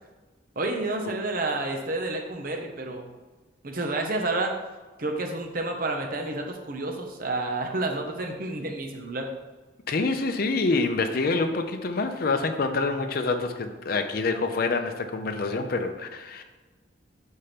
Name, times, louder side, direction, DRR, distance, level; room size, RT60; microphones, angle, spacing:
voice 1, 0.6-3.1 3.6-4.5 5.0-9.3, right 2 dB, 50° right, 3 dB, 0.8 m, -30 dB
voice 2, 9.9-16.4, left 3 dB, 50° left, 6 dB, 0.5 m, -26 dB
5.7 x 4.4 x 5.0 m, 1.3 s
head